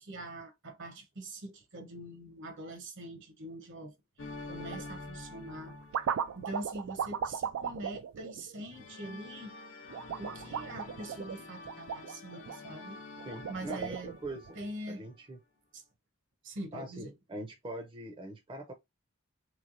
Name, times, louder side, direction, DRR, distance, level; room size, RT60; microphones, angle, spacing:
voice 1, 0.0-3.9 4.4-5.8 6.3-9.6 10.2-13.0 13.5-14.1 14.5-15.0 15.7-15.8 16.4-17.1, right 1 dB, 60° right, 0.9 m, -43 dB
sound 1, 4.2-6.8 8.7-14.9, left 3 dB, 60° left, 0.7 m, -47 dB
sound 2, 4.5-4.9 5.5-9.1 9.9-12.6 13.2-14.5, right 7 dB, 80° right, 0.3 m, -37 dB
voice 2, 13.3-14.6 14.9-15.4 16.7-18.7, right 1 dB, 25° right, 0.6 m, -42 dB
3.2 x 3.2 x 2.5 m
head